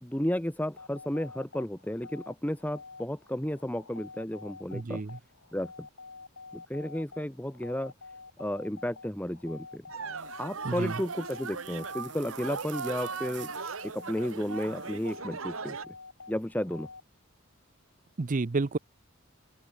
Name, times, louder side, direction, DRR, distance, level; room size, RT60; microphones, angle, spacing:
voice 1, 0.0-5.0 5.5-5.9 6.5-7.9 8.4-9.8 10.4-13.5 13.8-15.9 16.3-16.9, equal, 10° left, 1.5 m, -33 dB
sound 1, 0.7-17.0, left 4 dB, 80° left, 3.9 m, -48 dB
voice 2, 4.7-5.2 10.6-10.9 18.2-18.8, right 3 dB, 40° right, 0.6 m, -30 dB
sound 2, 9.9-15.9, right 5 dB, 75° right, 1.3 m, -38 dB
sound 3, 10.2-15.2, right 15 dB, 60° right, 5.5 m, -52 dB
open air
head